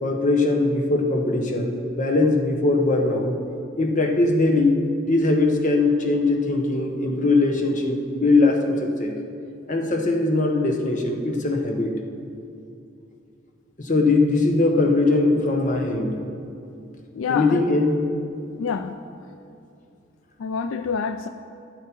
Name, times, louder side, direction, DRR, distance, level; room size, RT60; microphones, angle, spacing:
voice 1, 0.0-3.3 3.8-4.8 5.0-9.1 9.7-11.9 13.8-16.2 17.3-18.1, left 2 dB, 40° left, 2 dB, 1.1 m, -21 dB
voice 2, 17.1-17.8 18.6-19.0 20.4-21.3, left 6 dB, 80° left, 10 dB, 0.4 m, -27 dB
12.0 x 8.6 x 4.5 m, 2.7 s
head